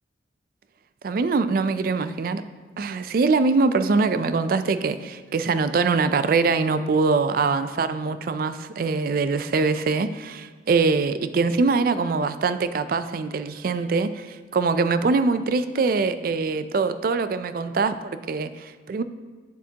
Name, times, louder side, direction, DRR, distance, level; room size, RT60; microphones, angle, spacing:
voice 1, 1.0-2.4 2.8-19.0, right 4 dB, 50° right, 12 dB, 0.4 m, -23 dB
8.5 x 7.2 x 2.8 m, 1.4 s
head